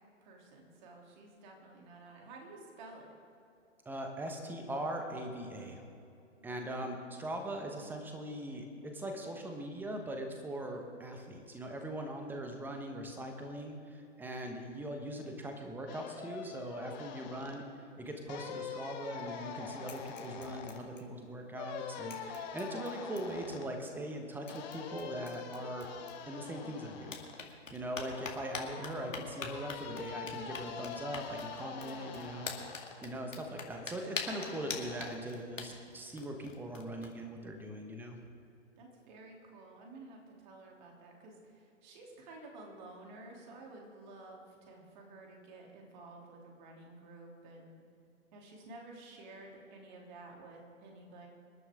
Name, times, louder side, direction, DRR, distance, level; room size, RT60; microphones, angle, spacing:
voice 1, 0.2-3.1 6.4-7.1 28.1-28.2 38.8-47.8 48.3-51.3, right 2 dB, 35° right, 0 dB, 3.2 m, -52 dB
voice 2, 3.8-5.8 6.4-25.9 26.3-27.2 27.4-32.5 33.0-38.2, right 1 dB, 5° right, 4 dB, 1.2 m, -41 dB
sound 1, 15.9-17.6 18.3-20.8 21.5-23.7 24.5-27.4 28.1-33.0 34.2-35.1, left 7 dB, 35° left, 1.8 m, -45 dB
sound 2, 19.0-19.5 19.8-21.4 21.7-21.8 22.1-23.5 24.1-24.2 24.5-26.6 27.0-37.1, left 4 dB, 80° left, 2.3 m, -45 dB
26.0 x 11.0 x 3.7 m, 2.6 s
figure-of-eight pair, 130°, 38 cm